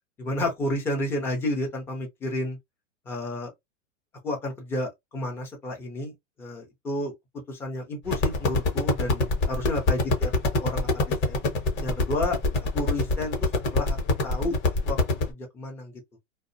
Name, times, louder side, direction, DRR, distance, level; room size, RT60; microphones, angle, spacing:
voice 1, 0.2-2.6 3.1-3.5 4.2-7.1 7.5-10.3 10.6-11.4 11.8-12.4 12.7-13.3 13.7-14.0 14.2-14.5 14.8-15.9, left 1 dB, 5° left, 0.4 m, -31 dB
sound 1, 8.1-15.3, left 2 dB, 30° left, 0.8 m, -24 dB
2.4 x 2.0 x 2.5 m
supercardioid pair, 145°, 38 cm